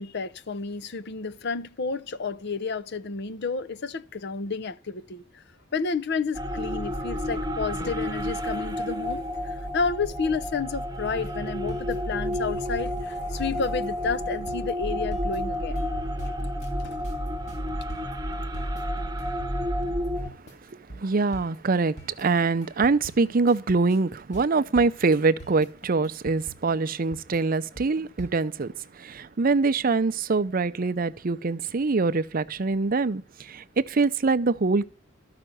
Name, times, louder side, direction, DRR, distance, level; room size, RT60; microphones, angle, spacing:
voice 1, 0.0-5.4 5.7-15.9 16.8-17.0, left 4 dB, 55° left, 0.6 m, -31 dB
sound 1, 6.3-20.3, equal, 20° right, 0.9 m, -30 dB
sound 2, 11.1-28.7, right 1 dB, 35° left, 3.0 m, -44 dB
voice 2, 20.7-34.8, right 4 dB, 45° right, 0.6 m, -24 dB
13.0 x 5.8 x 7.7 m
head